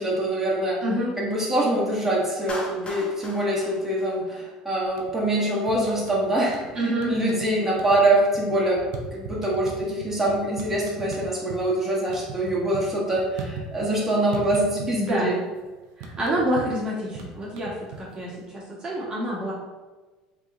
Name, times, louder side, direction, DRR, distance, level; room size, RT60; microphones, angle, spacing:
voice 1, 0.0-0.8 1.2-6.6 7.1-15.4, right 1 dB, 10° right, -5 dB, 1.1 m, -24 dB
voice 2, 0.8-1.1 6.7-7.1 14.9-15.3 16.0-19.5, equal, 30° right, -6 dB, 1.1 m, -27 dB
Clapping, 2.5-4.8, left 1 dB, 40° left, 0.8 m, -38 dB
sound 1, 4.9-5.4 5.7-6.7 7.0-7.5 7.7-11.6 11.9-14.0 14.3-15.2 15.4-18.3, right 5 dB, 70° right, 0.5 m, -38 dB
3.5 x 2.9 x 2.4 m, 1.2 s
hypercardioid pair, 80°, 3 cm